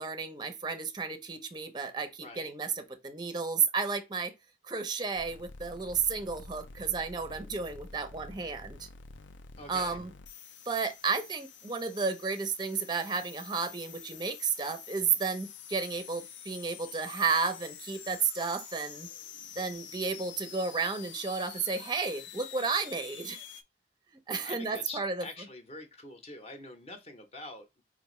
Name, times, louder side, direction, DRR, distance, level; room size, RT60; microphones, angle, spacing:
voice 1, 0.0-4.3 4.6-8.9 9.7-10.1 10.7-19.1 19.6-23.4 24.3-25.3, right 5 dB, 25° right, 0.5 m, -32 dB
voice 2, 2.2-2.5 9.6-10.0 24.4-27.8, left 2 dB, 35° left, 0.7 m, -45 dB
sound 1, 5.1-23.6, left 7 dB, 85° left, 0.5 m, -48 dB
4.5 x 2.5 x 3.0 m
head